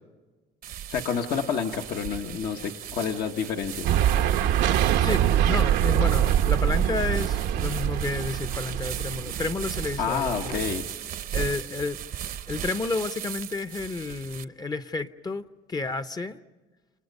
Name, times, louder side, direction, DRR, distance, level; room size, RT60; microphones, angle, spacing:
sound 1, 0.6-14.5, right 10 dB, 60° right, 0.8 m, -38 dB
voice 1, 0.9-3.9 10.0-10.9, left 6 dB, 65° left, 3 dB, 1.3 m, -29 dB
sound 2, 3.8-10.8, right 10 dB, 85° right, 0.9 m, -24 dB
voice 2, 5.0-10.6 11.3-12.0 12.5-16.4, left 3 dB, 25° left, 12 dB, 0.7 m, -31 dB
29.0 x 29.0 x 5.4 m, 1.2 s
cardioid pair, 110°, 17 cm